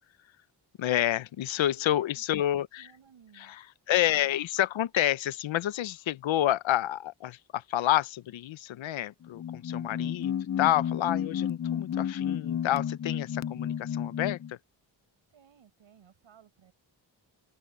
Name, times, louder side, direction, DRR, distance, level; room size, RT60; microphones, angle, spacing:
voice 1, 0.8-2.9 3.9-14.6, left 13 dB, 90° left, 0.8 m, -29 dB
voice 2, 1.7-2.2 2.8-3.6 15.3-16.7, right 8 dB, 85° right, 6.5 m, -58 dB
sound 1, 9.2-14.5, left 9 dB, 40° left, 0.6 m, -32 dB
open air
cardioid pair, 70°, 45 cm